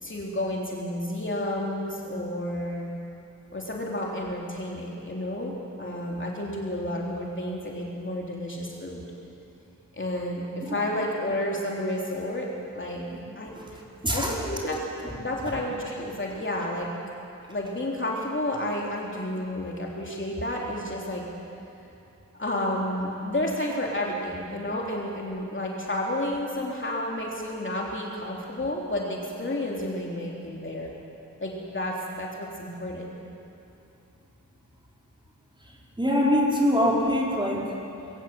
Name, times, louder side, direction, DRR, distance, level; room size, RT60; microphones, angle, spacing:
voice 1, 0.0-2.9 3.5-9.1 10.0-13.0 13.4-13.6 14.1-16.9 17.5-21.2 22.4-30.9 31.4-33.2, left 1 dB, 35° left, -2 dB, 3.2 m, -31 dB
voice 2, 14.0-14.4 36.0-37.7, equal, 15° right, -3 dB, 4.9 m, -23 dB
22.0 x 17.0 x 7.7 m, 2.7 s
cardioid pair, 65°, 33 cm